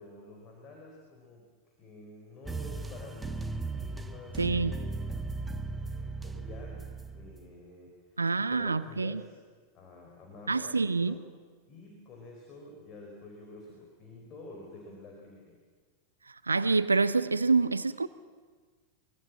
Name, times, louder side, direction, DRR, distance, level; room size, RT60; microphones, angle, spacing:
voice 1, 0.0-1.5 1.8-6.8 7.1-9.4 9.7-11.2 11.6-15.6, left 2 dB, 30° left, 1 dB, 4.8 m, -49 dB
sound 1, 2.4-7.5, right 3 dB, 10° right, 1.2 m, -37 dB
voice 2, 4.4-4.7 8.2-9.2 10.5-11.1 16.5-18.1, right 4 dB, 80° right, 16 dB, 0.7 m, -26 dB
24.0 x 23.5 x 7.5 m, 1.5 s
figure-of-eight pair, 90°, 0 cm